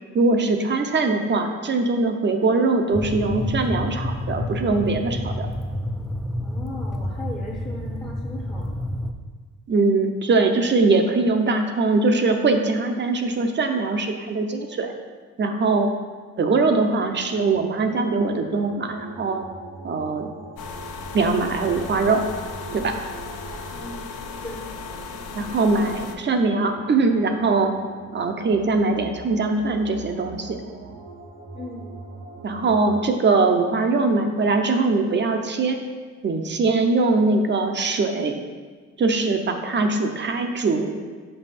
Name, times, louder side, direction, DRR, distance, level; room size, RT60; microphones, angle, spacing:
voice 1, 0.1-5.5 9.7-14.9 15.4-15.9 16.4-19.5 19.8-20.3 21.1-22.3 22.7-22.9 25.3-27.7 28.1-30.6 32.4-35.8 36.2-38.4 39.0-40.9, right 3 dB, 35° right, 5 dB, 0.6 m, -21 dB
sound 1, 2.9-9.1, left 1 dB, ahead, 0.4 m, -29 dB
voice 2, 6.4-9.0 23.7-24.0 24.4-24.7 31.5-31.9, left 2 dB, 15° left, -1 dB, 0.8 m, -37 dB
sound 2, 17.0-33.0, right 3 dB, 75° right, 1.3 m, -41 dB
sound 3, 20.6-26.2, left 5 dB, 90° left, 0.7 m, -36 dB
5.4 x 5.4 x 4.2 m, 1.5 s
cardioid pair, 90°, 30 cm